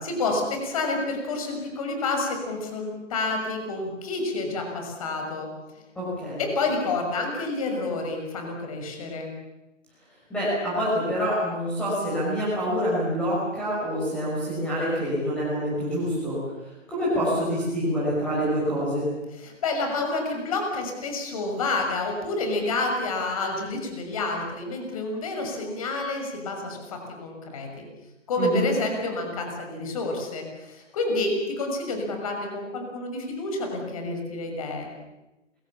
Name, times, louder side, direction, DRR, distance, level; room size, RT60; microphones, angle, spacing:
voice 1, 0.0-5.5 6.4-9.3 19.4-27.8 28.3-34.9, left 2 dB, 30° left, 3 dB, 6.5 m, -29 dB
voice 2, 5.9-6.4 10.3-16.4 16.9-19.0 28.4-28.6, equal, 5° left, -9 dB, 6.1 m, -26 dB
29.5 x 23.5 x 7.3 m, 1.0 s
hypercardioid pair, 170°, 38 cm